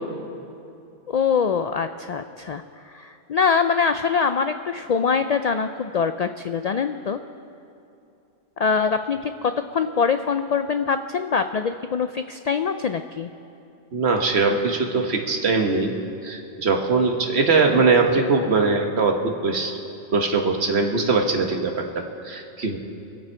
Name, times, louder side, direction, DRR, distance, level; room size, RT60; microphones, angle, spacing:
voice 1, 1.1-7.2 8.6-13.3, left 6 dB, 65° left, 9 dB, 0.4 m, -24 dB
voice 2, 13.9-15.9 16.2-19.8 20.1-22.8, right 4 dB, 65° right, 3 dB, 1.5 m, -21 dB
25.5 x 8.7 x 4.5 m, 2.7 s
omnidirectional pair, 1.2 m